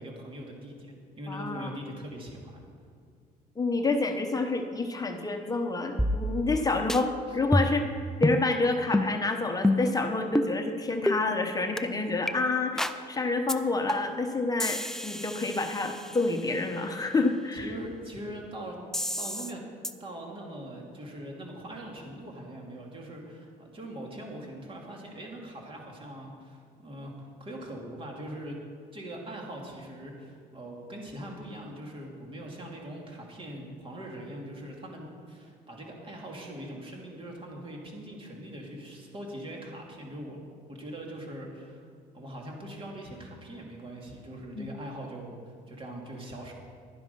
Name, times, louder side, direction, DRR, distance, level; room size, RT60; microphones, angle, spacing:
voice 1, 0.0-2.6 6.5-6.7 7.3-7.4 17.5-18.8 19.2-19.6 20.0-28.6 28.9-40.4 40.7-41.9 42.1-46.5, right 1 dB, 30° right, -1 dB, 2.7 m, -41 dB
voice 2, 1.3-1.7 3.6-7.9 8.2-17.7 44.6-44.7, left 3 dB, 20° left, 5 dB, 1.0 m, -28 dB
sound 1, 6.0-6.6 6.9-7.0 7.5-7.9 8.2-8.4 8.9-9.1 9.6-9.9 10.3-10.5 11.1-11.2 11.8-11.9 12.3-12.4 12.8-13.0 13.5-13.6 13.9-14.2 14.6-16.4 18.9-19.5 19.8-19.9, left 1 dB, 5° left, 0.5 m, -28 dB
11.5 x 10.5 x 5.5 m, 2.1 s
cardioid pair, 110°, 17 cm